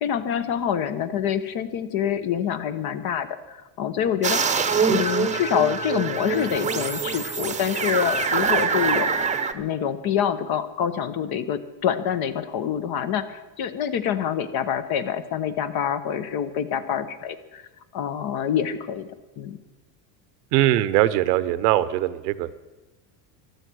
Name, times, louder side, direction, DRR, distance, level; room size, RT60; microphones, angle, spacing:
voice 1, 0.0-9.2 9.5-17.6 17.9-19.1 19.4-19.6, left 9 dB, 50° left, 11 dB, 1.3 m, -26 dB
sound 1, 4.2-9.5, right 5 dB, 15° right, 0.9 m, -24 dB
voice 2, 20.5-22.5, right 14 dB, 80° right, 15 dB, 1.0 m, -21 dB
15.0 x 12.0 x 6.4 m, 1.1 s
supercardioid pair, 115°, 47 cm